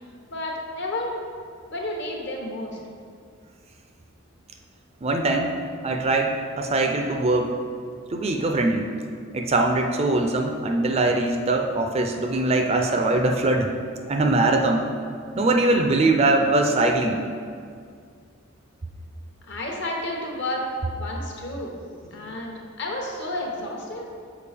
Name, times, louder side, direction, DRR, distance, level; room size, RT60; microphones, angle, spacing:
voice 1, 0.3-1.1 1.7-2.8 19.5-20.7 20.9-21.8 22.1-24.1, left 1 dB, 55° left, 0 dB, 1.0 m, -31 dB
voice 2, 5.0-5.6 5.8-7.5 8.1-8.8 9.3-13.7 14.1-14.8 15.3-17.2 22.2-22.3, right 2 dB, 30° right, 3 dB, 0.4 m, -22 dB
6.8 x 4.7 x 3.4 m, 2.2 s
head